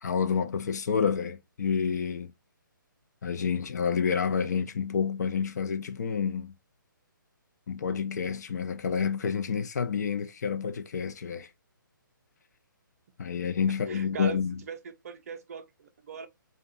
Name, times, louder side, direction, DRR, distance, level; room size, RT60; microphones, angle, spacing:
voice 1, 0.0-2.3 3.2-6.5 7.7-11.5 13.2-14.6, left 6 dB, 50° left, 0.4 m, -29 dB
voice 2, 13.9-14.4 14.7-16.3, right 6 dB, 45° right, 0.4 m, -40 dB
2.5 x 2.2 x 2.3 m
figure-of-eight pair, 140°, 11 cm